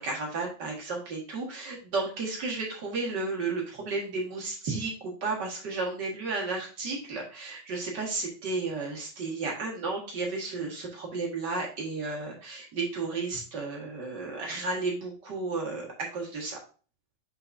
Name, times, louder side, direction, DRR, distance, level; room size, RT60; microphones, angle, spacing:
voice 1, 0.0-16.6, right 3 dB, 40° right, -1 dB, 1.6 m, -33 dB
6.4 x 6.1 x 2.6 m, 0.37 s
omnidirectional pair, 4.0 m